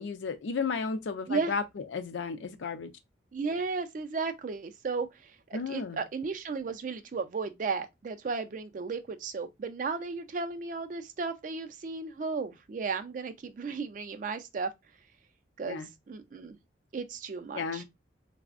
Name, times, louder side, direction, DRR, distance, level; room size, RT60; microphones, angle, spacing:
voice 1, 0.0-2.9 5.5-6.0 15.7-15.9 17.5-17.8, left 5 dB, 85° left, 0.4 m, -33 dB
voice 2, 3.3-5.1 5.5-14.7 15.6-15.8 16.1-16.6 16.9-17.8, right 4 dB, 45° right, 0.3 m, -34 dB
3.3 x 2.0 x 2.4 m
head